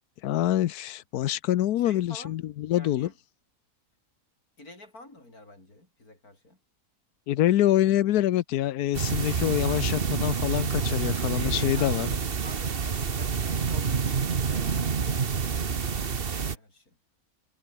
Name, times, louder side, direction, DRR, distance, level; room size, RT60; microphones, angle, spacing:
voice 1, 0.2-3.1 7.3-12.1, left 13 dB, 90° left, 1.2 m, -25 dB
voice 2, 1.8-2.4 2.7-3.1 4.6-6.6 11.1-12.8 13.1-17.0, left 2 dB, 70° left, 7.8 m, -49 dB
sound 1, 8.9-16.6, right 6 dB, 40° right, 1.3 m, -28 dB
omnidirectional pair, 1.6 m